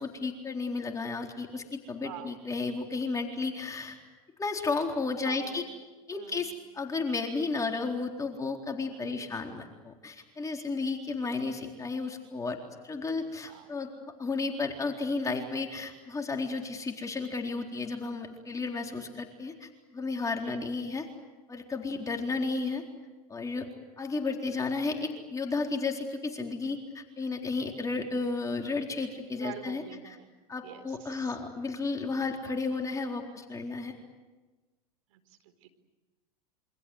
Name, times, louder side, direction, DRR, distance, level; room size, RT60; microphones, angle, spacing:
voice 1, 0.0-4.0 4.4-5.6 6.1-12.6 12.8-13.9 14.2-21.1 21.5-22.8 23.3-23.7 24.0-30.2 30.5-33.9, left 3 dB, 15° left, 2 dB, 4.0 m, -33 dB
voice 2, 2.0-2.3 5.2-5.6 6.1-6.6 9.0-9.3 13.5-13.7 20.4-20.6 29.4-30.3 30.6-31.4 35.1-35.7, right 11 dB, 65° right, 9 dB, 4.3 m, -46 dB
28.0 x 25.0 x 8.0 m, 1.2 s
hypercardioid pair, 95°, 19 cm